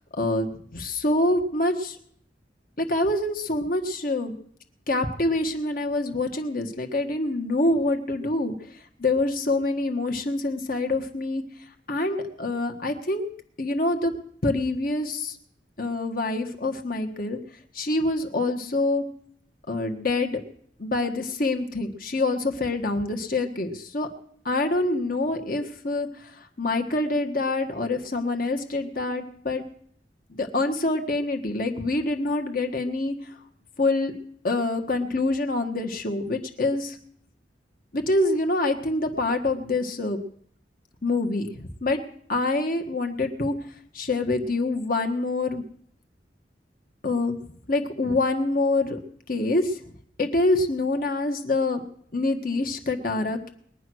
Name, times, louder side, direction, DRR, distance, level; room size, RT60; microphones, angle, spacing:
voice 1, 0.1-2.0 2.8-4.4 4.9-8.5 9.0-11.4 11.9-13.3 13.6-14.1 14.4-15.4 15.8-17.4 17.7-19.0 19.7-20.4 20.8-24.1 24.4-29.6 30.3-33.2 33.8-34.1 34.4-37.0 37.9-40.2 41.0-42.0 42.3-43.5 43.9-45.6 47.0-47.4 47.7-49.0 49.3-49.8 50.2-51.8 52.1-53.5, left 2 dB, 55° left, 5 dB, 1.5 m, -26 dB
21.0 x 9.8 x 6.3 m, 0.65 s
head